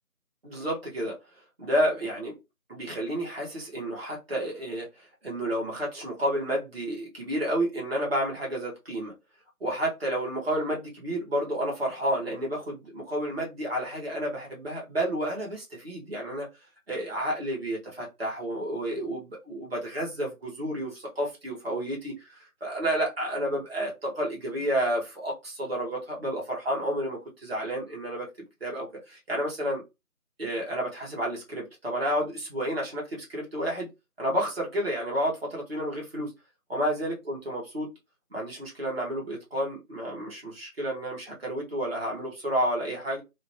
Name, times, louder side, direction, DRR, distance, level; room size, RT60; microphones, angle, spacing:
voice 1, 0.4-1.2 1.6-2.4 2.7-9.1 9.6-16.5 16.9-22.3 22.6-28.3 28.6-29.8 30.4-33.9 34.2-36.3 36.7-37.9 38.3-43.2, right 1 dB, 45° right, 0.9 m, -30 dB
2.4 x 2.1 x 2.5 m
figure-of-eight pair, 170°, 44 cm